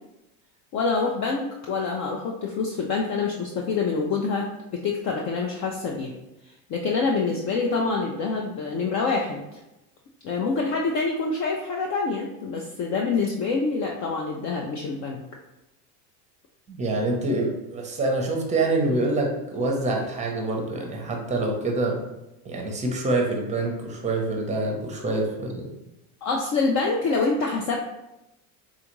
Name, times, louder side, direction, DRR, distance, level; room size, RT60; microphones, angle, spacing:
voice 1, 0.7-6.1 6.7-9.6 10.2-15.2 26.2-27.8, left 4 dB, 40° left, 0 dB, 0.4 m, -26 dB
voice 2, 16.7-22.0 22.4-25.7, right 2 dB, 15° right, 1 dB, 0.7 m, -26 dB
3.6 x 2.4 x 3.0 m, 0.94 s
supercardioid pair, 105°, 48 cm